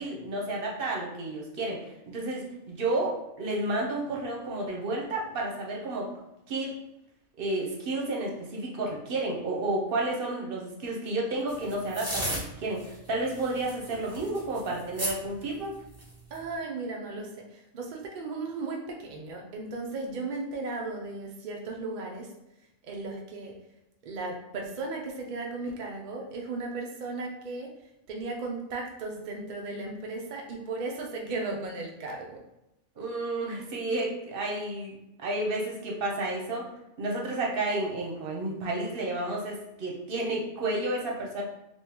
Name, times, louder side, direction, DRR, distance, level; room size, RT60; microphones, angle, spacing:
voice 1, 0.0-6.1 6.5-6.7 7.4-15.7 33.0-36.6 37.0-41.4, right 2 dB, 50° right, -2 dB, 0.8 m, -31 dB
sound 1, 11.5-12.4 12.8-13.0 13.3-15.1 15.9-16.4, right 1 dB, 15° right, 0.6 m, -34 dB
voice 2, 16.3-22.3 22.8-23.5 24.0-27.7 28.1-32.4, right 3 dB, 70° right, 0 dB, 0.4 m, -36 dB
3.5 x 3.0 x 2.9 m, 0.89 s
omnidirectional pair, 1.5 m